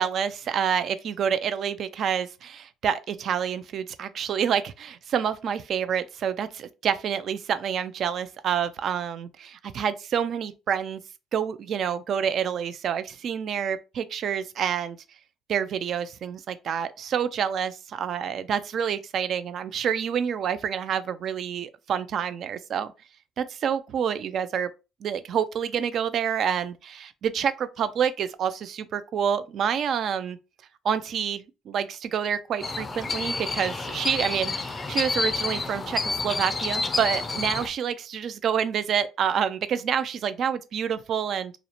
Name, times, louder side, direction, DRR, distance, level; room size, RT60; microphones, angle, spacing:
voice 1, 0.0-11.0 11.3-15.0 15.5-22.9 23.4-24.7 25.0-30.4 30.8-41.5, right 8 dB, 60° right, 0.3 m, -28 dB
sound 1, 32.6-37.7, left 3 dB, 25° left, 0.4 m, -29 dB
2.4 x 2.0 x 2.8 m
supercardioid pair, 75°, 0 cm